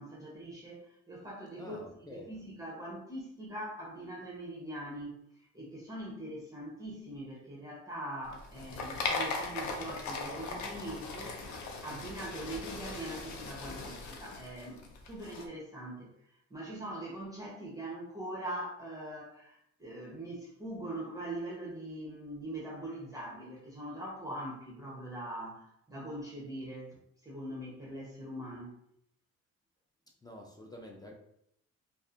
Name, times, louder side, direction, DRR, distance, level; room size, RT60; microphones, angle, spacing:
voice 1, 0.0-1.8 2.1-5.2 5.5-16.1 16.5-28.8, right 1 dB, 10° right, -5 dB, 0.8 m, -42 dB
voice 2, 1.6-2.4 30.2-31.1, left 1 dB, 15° left, -1 dB, 0.4 m, -48 dB
sound 1, 8.3-15.4, left 3 dB, 75° left, 0.6 m, -39 dB
2.5 x 2.5 x 2.4 m, 0.73 s
cardioid pair, 90°, 30 cm